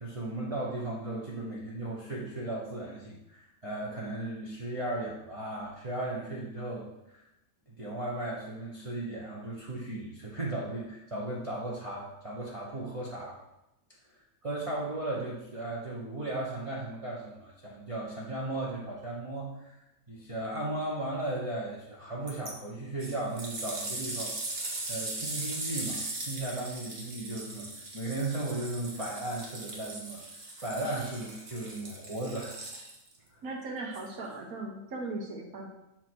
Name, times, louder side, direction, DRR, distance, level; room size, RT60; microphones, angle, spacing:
voice 1, 0.0-7.2 7.8-13.4 14.4-19.8 20.1-30.2 30.6-32.5 33.3-33.4, right 2 dB, 25° right, -6 dB, 0.9 m, -36 dB
sound 1, 22.3-22.5 23.0-33.2 33.9-34.0, right 2 dB, 45° right, 1.3 m, -39 dB
voice 2, 33.4-35.7, right 2 dB, 70° right, 0 dB, 1.5 m, -38 dB
7.4 x 3.0 x 6.1 m, 0.89 s
omnidirectional pair, 1.6 m